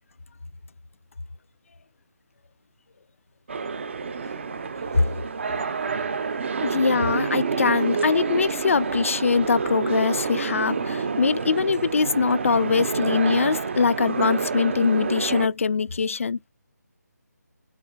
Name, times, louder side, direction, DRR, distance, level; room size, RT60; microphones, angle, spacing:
sound 1, 3.5-15.5, right 5 dB, 40° right, 0.6 m, -28 dB
voice 1, 6.6-16.4, left 5 dB, 45° left, 0.4 m, -22 dB
4.1 x 3.9 x 2.3 m
figure-of-eight pair, 160°, 10 cm